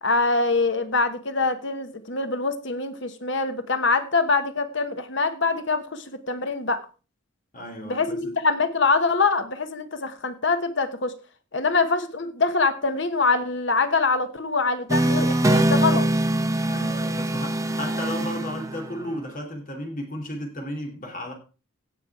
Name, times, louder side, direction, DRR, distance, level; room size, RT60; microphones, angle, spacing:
voice 1, 0.0-6.8 7.9-11.1 11.5-16.1, left 3 dB, 55° left, 1.1 m, -24 dB
voice 2, 7.5-8.3 16.6-21.3, left 1 dB, 40° left, 2.7 m, -34 dB
sound 1, 14.9-19.1, right 1 dB, 15° right, 0.7 m, -23 dB
16.5 x 6.0 x 4.7 m
head